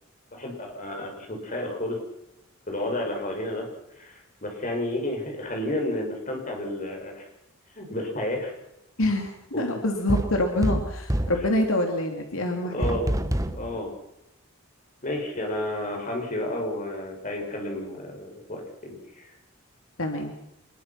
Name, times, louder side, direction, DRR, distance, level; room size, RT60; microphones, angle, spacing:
voice 1, 0.3-2.0 2.7-3.7 4.0-7.3 7.7-8.6 9.5-9.8 12.7-13.2 13.6-13.9 15.0-19.3, left 1 dB, 35° left, 1 dB, 6.6 m, -31 dB
voice 2, 9.0-12.9 20.0-20.3, left 1 dB, 75° left, 3 dB, 3.0 m, -26 dB
sound 1, 10.1-11.5 12.8-13.7, right 1 dB, 15° right, 1.4 m, -26 dB
26.0 x 21.5 x 6.1 m, 0.82 s
head